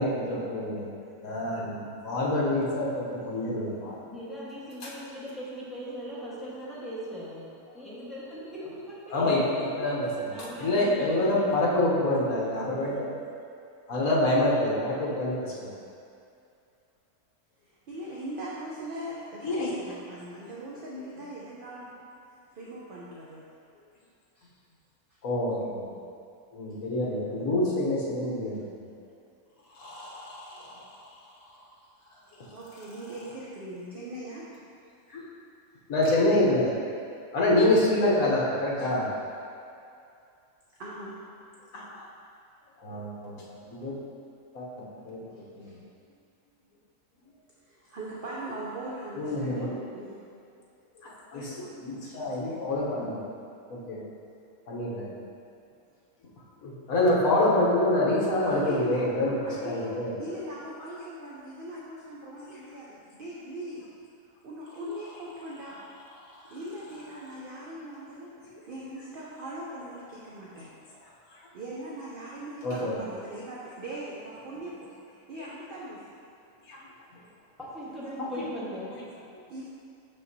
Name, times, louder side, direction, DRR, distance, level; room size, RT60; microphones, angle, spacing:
voice 1, 0.0-4.0 9.1-13.1 13.9-15.7 19.4-19.8 25.2-26.0 26.5-28.9 29.8-30.9 35.1-35.2 35.9-36.7 37.3-39.1 41.7-42.0 42.8-44.0 44.5-44.7 45.0-45.2 45.6-45.8 49.2-49.7 51.0-53.2 53.7-54.0 54.7-55.1 56.6-60.1 72.6-73.0 75.4-75.5 76.7-76.8 78.2-78.3, left 1 dB, 70° left, -5 dB, 1.4 m, -27 dB
voice 2, 1.6-1.9 4.1-7.5 7.7-9.3 10.1-11.7 77.6-79.0, equal, ahead, -9 dB, 1.1 m, -39 dB
voice 3, 17.9-21.9 22.5-23.4 24.3-24.5 32.5-34.5 40.8-41.1 45.3-45.7 47.7-49.7 49.9-50.2 58.4-59.9 60.2-63.8 64.4-65.8 66.5-68.3 68.7-70.7 71.5-74.7 75.1-76.0 79.5-79.6, right 1 dB, 50° right, -6 dB, 0.7 m, -40 dB
6.5 x 5.4 x 2.7 m, 2.5 s
omnidirectional pair, 1.6 m